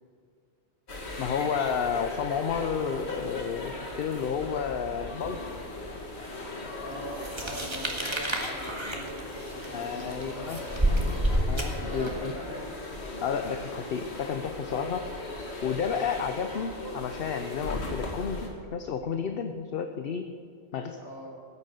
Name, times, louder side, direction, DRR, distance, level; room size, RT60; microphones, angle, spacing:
sound 1, 0.9-18.5, left 2 dB, 85° left, 2.2 m, -38 dB
voice 1, 1.2-5.5 9.7-10.6 11.3-12.3 13.2-15.1 15.6-20.3 20.7-21.0, left 7 dB, 65° left, 7 dB, 0.9 m, -31 dB
voice 2, 6.8-11.4 11.7-12.8 20.7-21.4, equal, 25° left, -4 dB, 3.6 m, -42 dB
sound 2, 7.2-12.3, right 1 dB, 25° right, 1.7 m, -29 dB
14.5 x 9.7 x 6.6 m, 2.4 s
omnidirectional pair, 1.1 m